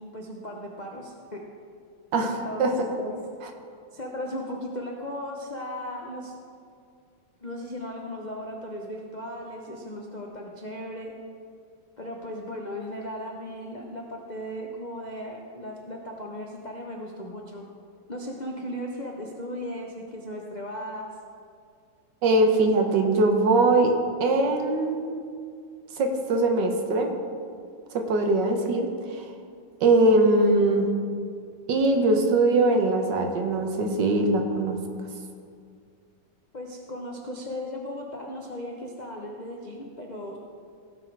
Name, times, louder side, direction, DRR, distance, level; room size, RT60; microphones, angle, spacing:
voice 1, 0.0-1.4 2.2-2.7 3.0-3.1 3.9-6.3 7.4-11.1 12.0-17.7 18.1-21.1 36.5-40.4, left 1 dB, 50° left, 0 dB, 0.5 m, -36 dB
voice 2, 22.2-23.9 24.2-25.2 26.0-27.1 27.9-28.9 29.1-29.2 29.8-30.9 31.7-34.8, right 2 dB, 65° right, 4 dB, 1.5 m, -21 dB
17.0 x 6.1 x 4.7 m, 2.3 s
omnidirectional pair, 2.2 m